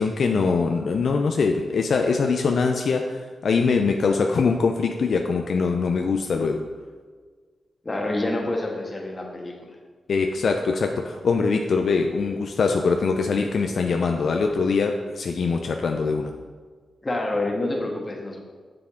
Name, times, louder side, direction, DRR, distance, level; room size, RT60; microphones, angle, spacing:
voice 1, 0.0-6.7 10.1-16.3, left 4 dB, 65° left, 4 dB, 0.5 m, -23 dB
voice 2, 7.8-9.7 17.0-18.4, left 2 dB, 30° left, 0 dB, 1.5 m, -27 dB
7.2 x 6.8 x 3.7 m, 1.5 s
cardioid pair, 85°, 0 cm